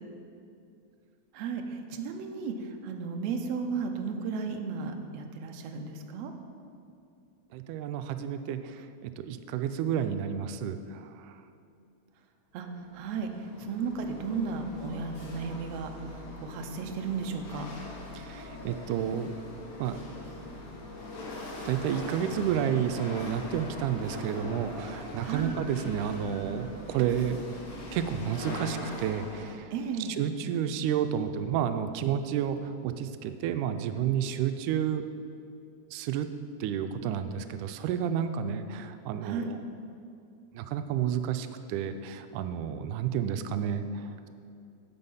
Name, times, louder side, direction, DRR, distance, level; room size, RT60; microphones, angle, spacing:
voice 1, 1.3-2.5 2.8-6.3 12.5-12.7 12.9-13.3 13.6-15.9 16.4-17.7 25.2-25.6 29.7-30.1 39.2-39.5, right 5 dB, 70° right, 4 dB, 1.8 m, -34 dB
voice 2, 7.5-11.4 18.2-19.4 19.8-20.1 21.5-27.6 27.9-29.7 30.0-35.1 35.9-36.3 36.6-39.6 40.5-44.3, right 9 dB, 90° right, 9 dB, 2.1 m, -31 dB
Chatter / Hiss / Rattle, 12.6-29.5, left 2 dB, 75° left, 0.8 m, -41 dB
9.7 x 7.3 x 5.5 m, 2.5 s
omnidirectional pair, 3.5 m